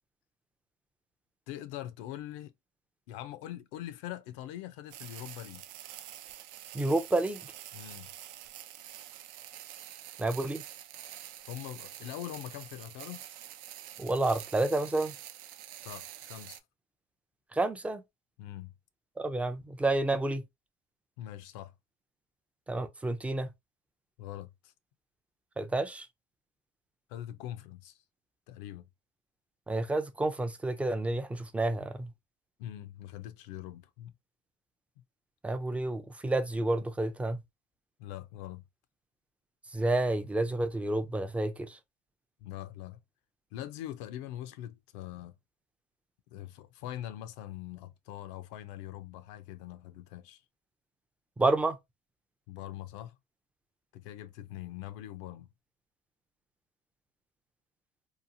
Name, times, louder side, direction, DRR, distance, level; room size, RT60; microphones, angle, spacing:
voice 1, 1.5-2.5 3.1-5.6 7.7-8.1 11.5-13.2 15.8-16.6 18.4-18.7 21.2-21.7 24.2-24.7 27.1-28.0 28.5-28.9 32.6-34.1 38.0-38.6 42.4-43.0 43.5-45.3 46.3-50.4 52.5-53.1 53.9-55.5, left 13 dB, 85° left, 0.4 m, -42 dB
sound 1, 4.9-16.6, right 12 dB, 70° right, 0.4 m, -47 dB
voice 2, 6.7-7.4 10.2-10.6 14.0-15.1 17.5-18.0 19.2-20.4 22.7-23.5 25.6-26.1 29.7-32.1 35.4-37.4 39.7-41.8 51.4-51.8, right 2 dB, 10° right, 0.4 m, -29 dB
2.8 x 2.3 x 2.5 m
supercardioid pair, 110°, 15 cm